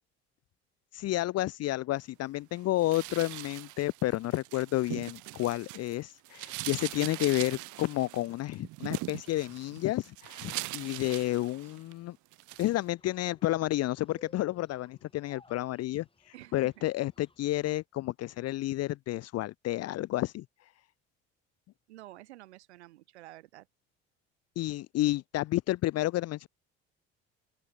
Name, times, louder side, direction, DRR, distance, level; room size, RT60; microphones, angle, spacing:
voice 1, 0.9-12.2 12.6-16.1 16.5-20.4 24.6-26.5, left 16 dB, 50° left, 0.6 m, -31 dB
sound 1, 2.8-6.0 6.2-11.9 12.3-12.7, right 19 dB, 60° right, 1.2 m, -41 dB
sound 2, 12.5-17.8, left 3 dB, 15° left, 5.7 m, -62 dB
voice 2, 16.3-16.9 21.9-23.7, right 17 dB, 85° right, 3.7 m, -50 dB
open air
hypercardioid pair, 60°, 33 cm